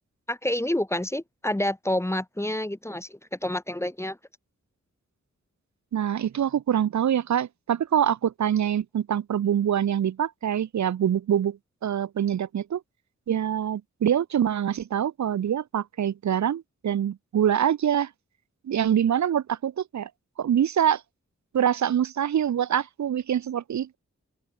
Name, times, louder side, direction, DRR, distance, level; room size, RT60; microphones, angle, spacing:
voice 1, 0.3-4.2, left 1 dB, 10° left, 0.8 m, -28 dB
voice 2, 5.9-12.8 13.3-18.1 18.6-20.1 20.4-21.0 21.5-24.0, right 9 dB, 75° right, 0.5 m, -25 dB
open air
wide cardioid pair, 100°, 29 cm